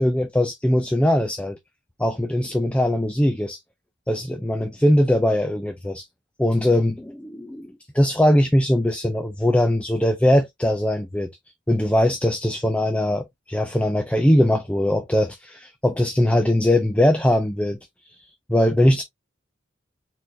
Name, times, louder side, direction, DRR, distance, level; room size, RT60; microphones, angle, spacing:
voice 1, 0.0-1.6 2.0-3.6 4.1-6.0 6.4-11.3 11.7-17.8 18.1-19.0, left 1 dB, 5° left, 0.4 m, -21 dB
4.3 x 3.9 x 2.7 m
head